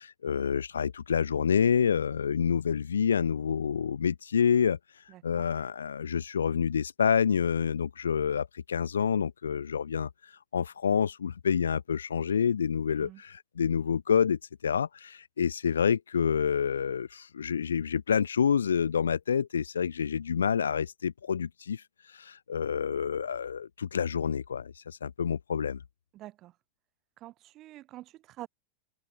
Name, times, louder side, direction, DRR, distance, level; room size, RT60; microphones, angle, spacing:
voice 1, 0.0-25.8, left 7 dB, 70° left, 0.5 m, -28 dB
voice 2, 5.1-5.4 13.0-13.2 26.1-26.5 27.2-28.5, right 15 dB, 35° right, 1.5 m, -46 dB
open air
figure-of-eight pair, 90°, 0 cm